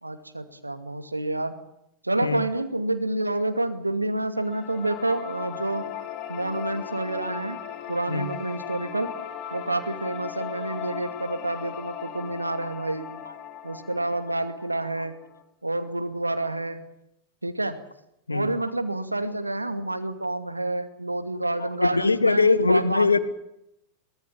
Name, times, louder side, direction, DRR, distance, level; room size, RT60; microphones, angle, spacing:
voice 1, 0.0-1.6 2.0-5.9 6.3-7.6 7.9-9.1 9.5-13.1 13.6-15.1 15.6-16.8 17.4-17.8 18.3-23.2, right 2 dB, 85° right, 2.4 m, -28 dB
sound 1, 4.4-15.4, left 10 dB, 35° left, 4.0 m, -38 dB
voice 2, 21.6-23.2, left 4 dB, 80° left, 1.4 m, -21 dB
23.5 x 18.0 x 8.6 m
figure-of-eight pair, 90°, 0 cm